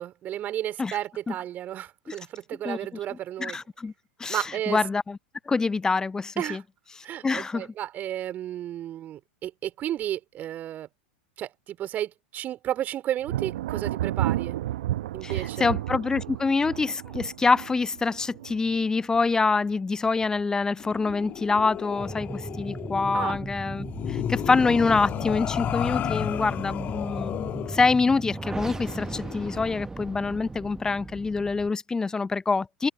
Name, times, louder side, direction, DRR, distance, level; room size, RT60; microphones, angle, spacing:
voice 1, 0.0-3.6 4.3-4.8 6.4-6.6 7.0-10.9 11.4-14.6 15.1-15.7 23.1-23.4, right 12 dB, 35° right, 3.9 m, -33 dB
voice 2, 3.4-3.9 4.2-4.4 4.7-5.2 5.5-6.6 7.2-7.7 15.2-27.4 27.7-32.9, left 4 dB, 10° left, 0.4 m, -25 dB
Thunder, 13.2-19.7 20.0-20.6 21.1-21.9, right 14 dB, 65° right, 1.0 m, -32 dB
sound 1, 20.8-29.7, left 11 dB, 35° left, 1.3 m, -33 dB
sound 2, 22.0-31.7, right 3 dB, 10° right, 1.3 m, -37 dB
open air
figure-of-eight pair, 90°, 5 cm